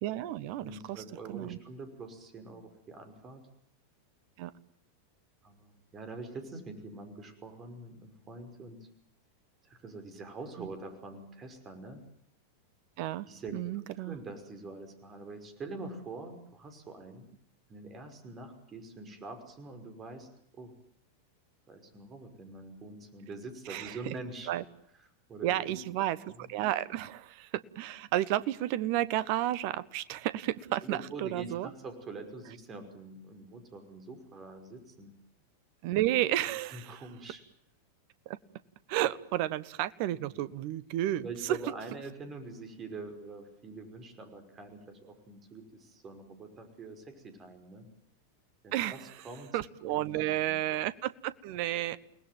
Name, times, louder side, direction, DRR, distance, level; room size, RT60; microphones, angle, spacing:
voice 1, 0.0-1.6 4.4-4.5 10.6-10.7 13.0-13.3 13.5-14.2 23.7-24.0 24.5-24.6 25.4-26.2 26.5-31.7 35.8-37.0 38.2-38.4 38.9-41.6 48.7-49.1 49.5-52.0, right 14 dB, 45° right, 17 dB, 1.3 m, -32 dB
voice 2, 0.6-3.4 5.4-8.9 9.6-12.0 13.3-17.3 17.7-20.7 21.7-24.5 25.3-26.1 26.3-26.5 30.8-35.1 36.7-37.4 40.3-40.5 41.2-47.9 48.6-49.6 49.9-50.6, right 3 dB, 25° right, 7 dB, 5.5 m, -45 dB
29.5 x 20.0 x 9.2 m, 0.71 s
figure-of-eight pair, 90°, 0 cm